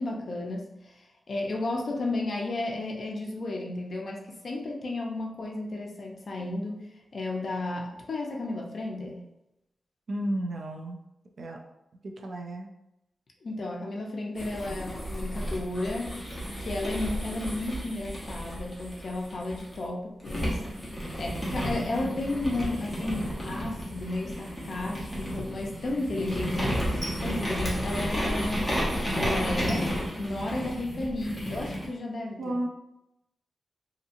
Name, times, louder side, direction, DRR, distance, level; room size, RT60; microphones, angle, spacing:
voice 1, 0.0-9.2 13.4-32.5, left 2 dB, 50° left, 0 dB, 0.5 m, -33 dB
voice 2, 10.1-11.0 11.4-11.6 12.0-12.7 32.4-32.7, right 1 dB, 55° right, 2 dB, 0.3 m, -32 dB
sound 1, 14.4-19.8 20.2-31.9, equal, 5° left, 0.8 m, -32 dB
2.7 x 2.7 x 2.5 m, 0.89 s
wide cardioid pair, 170°, 0 cm